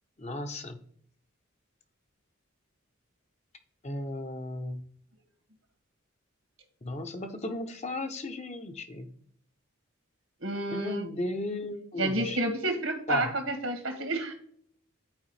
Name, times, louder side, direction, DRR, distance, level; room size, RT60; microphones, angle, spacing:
voice 1, 0.2-0.8 3.8-4.8 6.8-9.1 10.7-12.4 13.1-13.3, left 2 dB, 30° left, 6 dB, 0.7 m, -35 dB
voice 2, 10.4-11.0 12.0-14.3, right 2 dB, 80° right, 5 dB, 1.7 m, -30 dB
10.5 x 4.6 x 3.2 m, 0.62 s
head